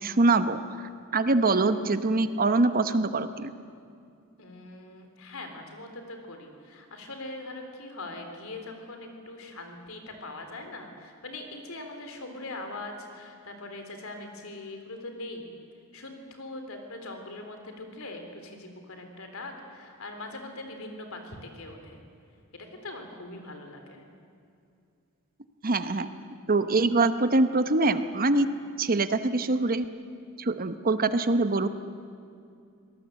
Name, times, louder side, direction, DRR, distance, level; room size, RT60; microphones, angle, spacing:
voice 1, 0.0-3.5 25.6-26.1 26.5-28.5 28.8-29.9 30.4-31.7, right 2 dB, 45° right, 11 dB, 0.9 m, -24 dB
voice 2, 4.4-15.5 15.9-22.0 22.5-24.0, left 2 dB, 70° left, 5 dB, 3.7 m, -41 dB
24.5 x 18.5 x 8.2 m, 2.4 s
head